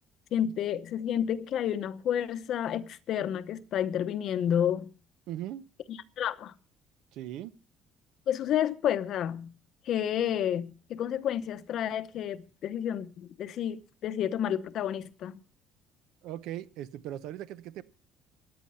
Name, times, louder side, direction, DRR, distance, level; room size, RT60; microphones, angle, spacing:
voice 1, 0.3-4.9 5.9-6.5 8.3-9.5 9.9-15.4, left 10 dB, 50° left, 0.8 m, -30 dB
voice 2, 5.3-5.7 7.1-7.5 16.2-17.8, right 12 dB, 70° right, 0.8 m, -39 dB
15.5 x 10.5 x 5.6 m
cardioid pair, 165°, 0 cm